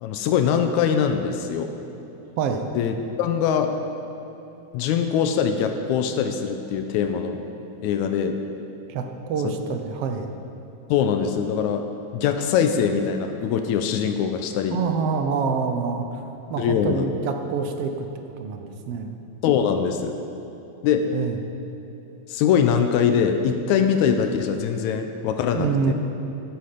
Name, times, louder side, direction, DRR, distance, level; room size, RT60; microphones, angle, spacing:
voice 1, 0.0-1.7 2.8-3.7 4.7-7.4 7.8-8.4 9.4-9.5 10.9-11.8 12.1-14.8 16.6-17.1 19.4-20.1 20.8-21.1 22.3-25.9, left 7 dB, 85° left, 6 dB, 2.0 m, -22 dB
voice 2, 2.4-2.7 8.9-10.3 14.7-16.2 16.5-18.1 18.4-19.2 21.1-21.4 25.5-25.9, right 5 dB, 65° right, 5 dB, 1.6 m, -26 dB
13.0 x 10.5 x 5.1 m, 3.0 s
omnidirectional pair, 3.4 m